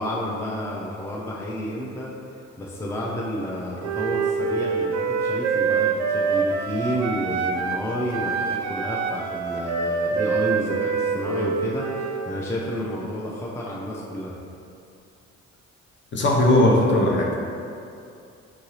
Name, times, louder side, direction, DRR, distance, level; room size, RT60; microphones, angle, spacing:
voice 1, 0.0-2.1 2.6-14.4, equal, 10° left, -4 dB, 0.4 m, -30 dB
Wind instrument woodwind instrument, 3.8-7.9 8.1-12.3, right 5 dB, 65° right, 0.4 m, -25 dB
voice 2, 16.1-17.4, left 1 dB, 40° left, -2 dB, 0.7 m, -18 dB
4.8 x 2.6 x 3.0 m, 2.5 s
cardioid pair, 90°, 30 cm